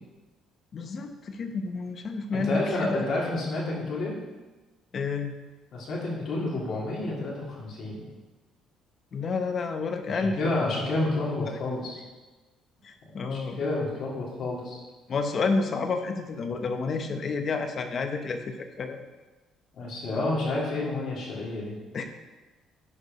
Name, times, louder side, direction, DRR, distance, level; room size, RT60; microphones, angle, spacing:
voice 1, 0.7-3.0 4.9-5.4 9.1-10.9 11.5-11.6 12.8-13.6 15.1-19.0 21.9-22.2, left 4 dB, 40° left, 6 dB, 0.9 m, -30 dB
voice 2, 2.3-4.1 5.7-8.0 10.1-12.0 13.3-14.8 19.8-21.8, left 2 dB, 55° left, -4 dB, 3.2 m, -29 dB
11.0 x 5.0 x 5.4 m, 1.2 s
cardioid pair, 125°, 0 cm